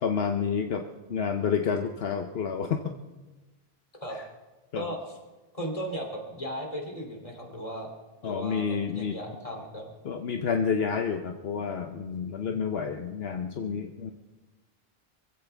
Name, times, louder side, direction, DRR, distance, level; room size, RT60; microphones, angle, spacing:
voice 1, 0.0-2.9 4.1-4.2 4.7-4.9 8.2-9.2 10.0-14.1, left 6 dB, 75° left, 5 dB, 1.1 m, -29 dB
voice 2, 4.7-5.2 5.5-7.9 8.2-9.9 12.5-12.6, equal, 35° left, 1 dB, 3.1 m, -36 dB
24.5 x 15.5 x 3.4 m, 1.2 s
omnidirectional pair, 1.0 m